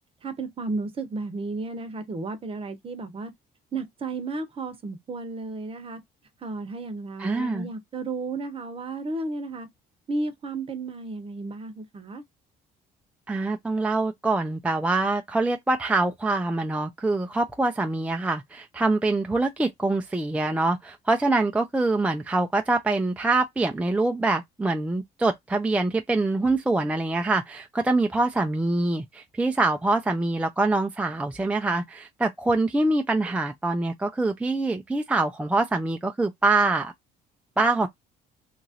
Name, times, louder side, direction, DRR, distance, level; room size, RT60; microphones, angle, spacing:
voice 1, 0.2-3.3 3.7-6.0 6.4-9.7 10.1-12.2, right 3 dB, 35° right, 0.8 m, -33 dB
voice 2, 7.2-7.7 13.3-36.9 37.6-37.9, right 2 dB, 5° right, 0.4 m, -24 dB
2.9 x 2.4 x 2.7 m
cardioid pair, 110°, 17 cm